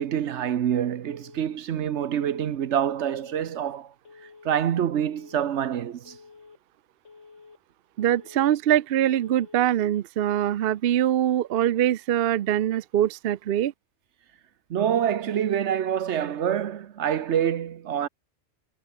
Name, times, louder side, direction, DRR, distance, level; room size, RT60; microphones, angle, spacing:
voice 1, 0.0-3.9 4.4-6.2 14.7-18.1, right 9 dB, 75° right, 1.1 m, -26 dB
Telephone, 1.0-1.6 2.0-2.6 3.0-3.6 4.0-4.6 5.0-5.6 6.0-6.6 7.0-7.6 8.0-8.6 9.0-9.6, left 4 dB, 90° left, 2.5 m, -50 dB
voice 2, 8.0-13.7, right 11 dB, 60° right, 0.7 m, -23 dB
omnidirectional pair, 1.2 m